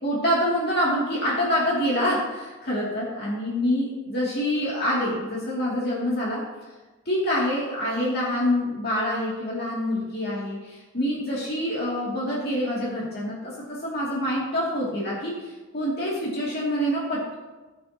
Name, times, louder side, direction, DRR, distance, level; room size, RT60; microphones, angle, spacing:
voice 1, 0.0-6.4 7.1-17.4, equal, 50° left, -6 dB, 2.6 m, -26 dB
19.5 x 8.6 x 2.9 m, 1.2 s
head